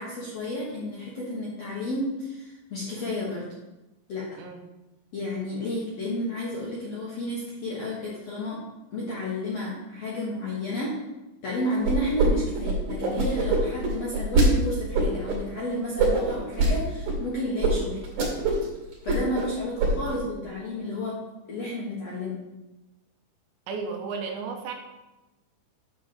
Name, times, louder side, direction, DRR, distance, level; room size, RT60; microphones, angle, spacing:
voice 1, 0.0-3.5 4.1-4.3 5.1-8.6 8.9-11.0 11.4-18.0 19.0-21.2 21.5-22.4, left 1 dB, 60° left, -6 dB, 1.8 m, -31 dB
sound 1, 11.8-12.3 12.5-14.5 14.9-15.4 16.0-16.7 17.1-17.2 17.6-17.7 18.0-18.7 18.9-19.5 19.8-20.2, right 3 dB, 55° right, 3.8 m, -23 dB
voice 2, 23.7-24.7, right 5 dB, 80° right, 3 dB, 3.3 m, -33 dB
9.9 x 4.2 x 7.0 m, 1.0 s
omnidirectional pair, 5.2 m